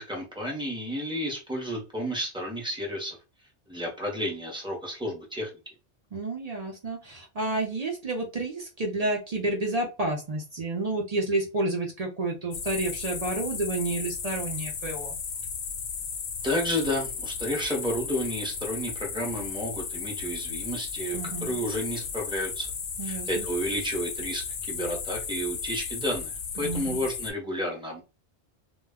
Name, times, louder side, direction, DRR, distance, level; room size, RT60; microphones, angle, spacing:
voice 1, 0.0-3.2 3.7-5.5 16.4-22.7 23.0-28.0, equal, 5° right, 0.7 m, -31 dB
voice 2, 6.1-15.2 21.1-21.6 23.0-23.5 26.6-27.0, right 2 dB, 50° right, 0.5 m, -30 dB
sound 1, 12.5-27.3, left 6 dB, 90° left, 0.9 m, -35 dB
2.2 x 2.1 x 3.4 m
omnidirectional pair, 1.1 m